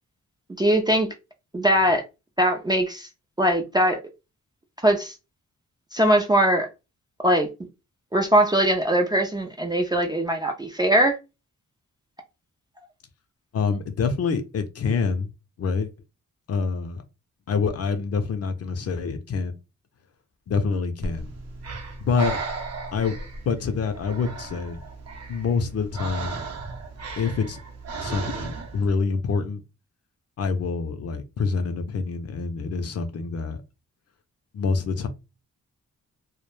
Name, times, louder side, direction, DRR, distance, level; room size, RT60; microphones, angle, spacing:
voice 1, 0.6-1.1 1.5-2.0 2.4-3.1 3.4-4.0 4.8-5.1 5.9-6.7 7.2-7.5 8.1-11.2, right 1 dB, 15° right, 0.3 m, -21 dB
voice 2, 13.5-15.3 15.6-15.9 16.5-17.0 17.5-19.5 20.5-21.3 22.0-22.4 22.9-23.2 23.5-24.8 25.3-26.4 27.2-27.6 28.0-29.6 30.4-33.6 34.5-35.1, left 5 dB, 55° left, 0.5 m, -26 dB
Breathing, 21.0-28.9, right 3 dB, 55° right, 0.6 m, -35 dB
2.3 x 2.1 x 3.0 m
wide cardioid pair, 140°, 30 cm